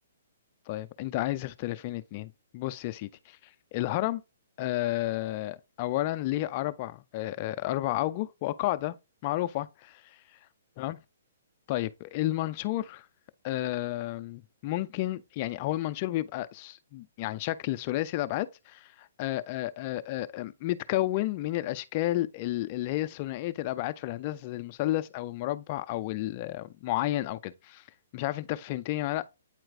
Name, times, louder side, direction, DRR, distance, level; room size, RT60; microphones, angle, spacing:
voice 1, 0.7-3.4 3.7-4.2 4.6-8.9 9.2-10.0 10.8-11.0 11.7-13.1 13.4-27.8 28.1-29.3, left 16 dB, 35° left, 0.5 m, -31 dB
8.9 x 4.5 x 2.5 m
hypercardioid pair, 145°, 0 cm